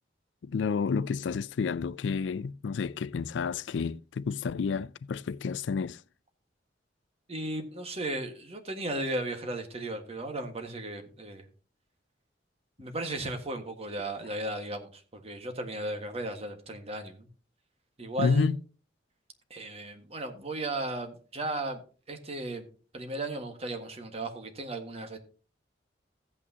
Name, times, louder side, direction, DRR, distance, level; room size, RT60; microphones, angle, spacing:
voice 1, 0.4-6.0 18.2-18.6, left 5 dB, 80° left, 0.4 m, -30 dB
voice 2, 7.3-11.4 12.8-17.3 18.0-18.5 19.5-21.8 22.1-22.7 22.9-25.2, right 1 dB, 35° right, 1.6 m, -35 dB
15.0 x 8.5 x 2.8 m
head